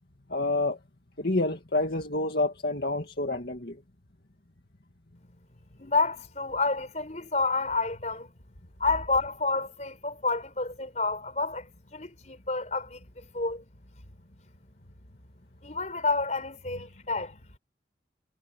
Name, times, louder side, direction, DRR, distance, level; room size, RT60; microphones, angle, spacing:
voice 1, 0.3-0.8 1.2-3.8, left 2 dB, 60° left, 2.2 m, -28 dB
voice 2, 5.8-8.3 8.8-13.6 15.6-17.4, left 3 dB, 40° left, 5.1 m, -29 dB
head